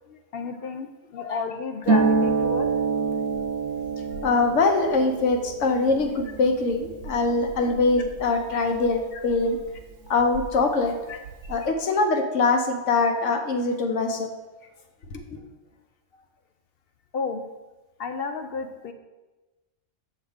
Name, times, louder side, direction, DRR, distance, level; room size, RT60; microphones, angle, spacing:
voice 1, 0.1-2.7 7.6-7.7 17.1-17.4 18.0-18.9, left 4 dB, 60° left, 6 dB, 0.7 m, -32 dB
Harp, 1.8-9.3 9.6-10.7 11.0-11.6, right 4 dB, 85° right, 1.0 m, -28 dB
voice 2, 4.2-9.6 10.1-11.2 11.5-14.3 15.1-15.2, left 3 dB, 85° left, 5 dB, 1.2 m, -23 dB
7.6 x 6.4 x 3.6 m, 1.1 s
omnidirectional pair, 1.2 m